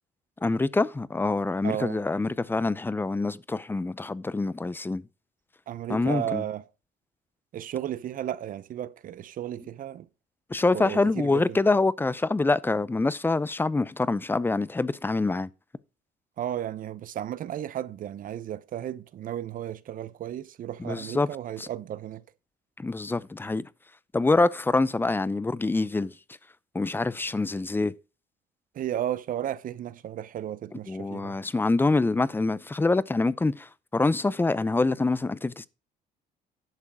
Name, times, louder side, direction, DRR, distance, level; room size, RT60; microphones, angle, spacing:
voice 1, 0.4-5.0 5.9-6.4 10.5-15.5 20.8-21.3 21.6-21.7 22.8-23.6 24.1-26.1 26.7-27.9 30.9-35.7, left 3 dB, 10° left, 0.6 m, -25 dB
voice 2, 1.6-2.0 5.7-6.6 7.5-10.1 10.7-11.6 16.4-22.2 28.7-31.4, right 11 dB, 55° right, 0.9 m, -34 dB
11.0 x 7.1 x 4.9 m
cardioid pair, 110°, 17 cm